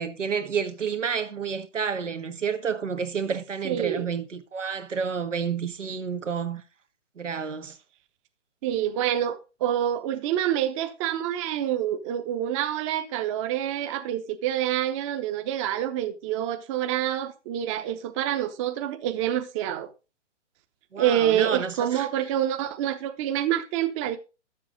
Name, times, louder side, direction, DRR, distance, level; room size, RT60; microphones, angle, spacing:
voice 1, 0.0-6.6 7.2-7.8 20.9-22.1, right 6 dB, 90° right, 1.6 m, -30 dB
voice 2, 3.6-4.0 8.6-19.9 21.0-24.2, right 11 dB, 25° right, 0.9 m, -27 dB
11.5 x 7.6 x 3.8 m
hypercardioid pair, 140°, 36 cm